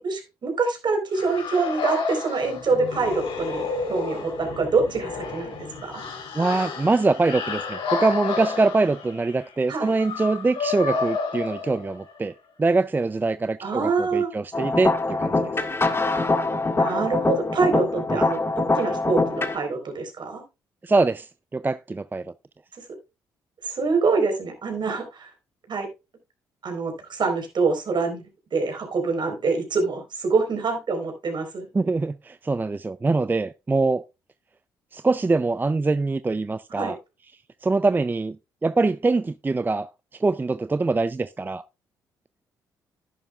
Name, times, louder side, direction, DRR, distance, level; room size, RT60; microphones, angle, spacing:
voice 1, 0.0-5.5 5.8-6.0 9.7-9.9 13.6-14.3 16.8-20.4 22.8-22.9 23.6-25.3 25.7-25.9 26.6-31.7 36.8-36.9, right 4 dB, 55° right, 4.2 m, -25 dB
sound 1, 1.1-12.2, left 4 dB, 70° left, 3.7 m, -31 dB
voice 2, 6.3-15.6 18.1-18.2 20.8-22.3 31.7-34.0 34.9-37.0 37.6-38.4 38.6-41.6, right 3 dB, 20° right, 0.4 m, -24 dB
sound 2, 14.5-19.6, left 3 dB, 25° left, 1.8 m, -24 dB
11.0 x 11.0 x 2.4 m
hypercardioid pair, 50°, 9 cm